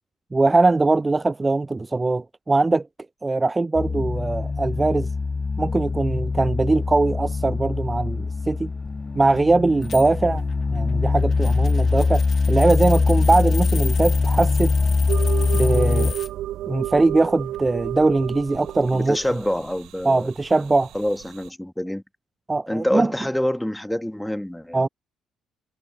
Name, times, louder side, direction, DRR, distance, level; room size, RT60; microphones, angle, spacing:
voice 1, 0.3-2.9 3.2-5.1 5.6-8.7 9.1-10.4 10.7-14.7 15.5-16.1 16.7-19.2 20.0-20.9 22.5-23.1 24.7-24.9, right 3 dB, 20° right, 0.5 m, -21 dB
sound 1, 3.7-16.1, left 4 dB, 30° left, 1.4 m, -22 dB
sound 2, 9.8-16.3 17.5-18.2 19.2-19.4, left 7 dB, 45° left, 1.8 m, -37 dB
sound 3, 15.1-21.5, right 13 dB, 65° right, 0.9 m, -32 dB
voice 2, 18.9-20.3 20.9-22.0 22.7-24.9, left 1 dB, 5° left, 2.0 m, -26 dB
figure-of-eight pair, 45°, 0 cm